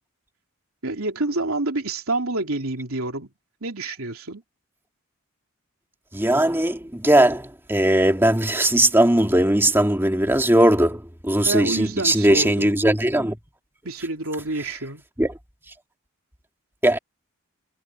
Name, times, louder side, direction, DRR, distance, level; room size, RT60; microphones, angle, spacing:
voice 1, 0.8-3.3 3.6-4.4 11.4-12.8 13.8-15.0, right 2 dB, 75° right, 3.1 m, -28 dB
voice 2, 6.1-13.4 15.2-15.3 16.8-17.0, right 1 dB, 10° right, 2.0 m, -19 dB
head